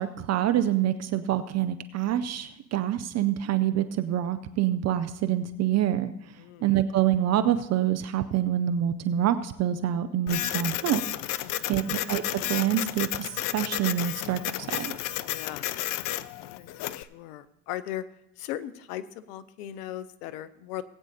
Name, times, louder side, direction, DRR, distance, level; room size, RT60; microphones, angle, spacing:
voice 1, 0.0-11.0 11.7-15.0, right 11 dB, 35° right, 12 dB, 0.6 m, -26 dB
Printer, 10.3-17.0, left 14 dB, 45° left, 0.5 m, -32 dB
voice 2, 11.4-11.8 15.2-18.0 18.4-20.8, left 12 dB, 65° left, 16 dB, 0.8 m, -39 dB
19.0 x 8.8 x 2.8 m, 0.85 s
hypercardioid pair, 85°, 48 cm